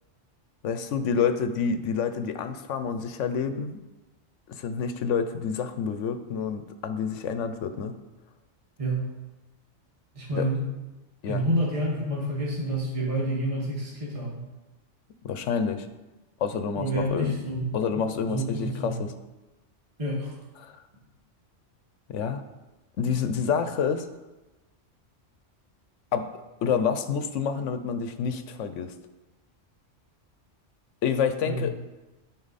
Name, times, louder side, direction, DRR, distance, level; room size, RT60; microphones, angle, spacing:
voice 1, 0.6-3.8 4.5-7.9 10.3-10.5 11.2-11.4 15.2-15.9 16.4-17.4 17.7-19.1 20.6-20.8 22.1-22.4 23.0-24.1 26.1-26.3 26.6-28.9 31.0-31.8, left 6 dB, 80° left, 10 dB, 1.0 m, -28 dB
voice 2, 10.1-10.6 11.3-14.5 16.8-17.8 18.3-19.0 20.0-20.3 31.4-31.7, right 1 dB, 30° right, -4 dB, 1.5 m, -28 dB
13.0 x 4.4 x 4.1 m, 1.1 s
omnidirectional pair, 1.3 m